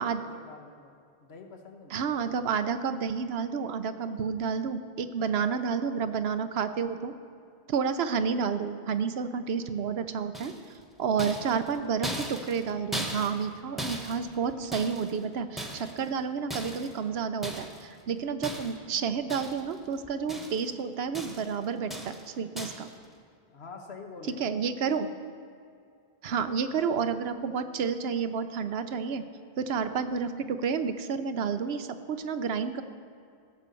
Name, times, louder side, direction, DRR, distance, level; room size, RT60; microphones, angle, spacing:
voice 1, 0.0-2.1 11.2-11.9 23.5-24.7, left 3 dB, 80° left, 3 dB, 1.5 m, -46 dB
voice 2, 1.9-7.1 7.7-10.5 11.0-22.9 24.4-25.1 26.2-29.2 29.6-32.8, right 6 dB, 75° right, 10 dB, 0.9 m, -30 dB
sound 1, 10.3-10.8 11.2-13.5 13.8-15.2 15.6-16.1 16.5-17.0 17.4-17.9 18.4-18.9 19.3-19.8 20.0-20.7 21.1-21.6 21.9-22.3 22.6-22.9, equal, ahead, 1.1 m, -38 dB
16.0 x 6.4 x 6.9 m, 2.4 s
omnidirectional pair, 1.1 m